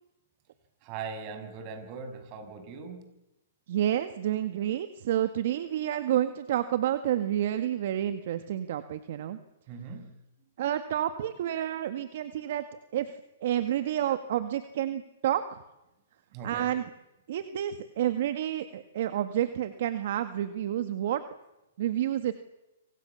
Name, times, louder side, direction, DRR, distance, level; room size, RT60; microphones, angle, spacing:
voice 1, 0.8-3.0 9.7-10.1 16.3-16.7, right 5 dB, 35° right, 8 dB, 6.4 m, -40 dB
voice 2, 3.7-9.4 10.6-12.6 12.9-13.1 13.4-15.4 16.4-16.8 17.3-21.2 21.8-22.3, right 11 dB, 55° right, 10 dB, 1.8 m, -29 dB
27.5 x 25.5 x 7.1 m, 0.93 s
hypercardioid pair, 145°, 0 cm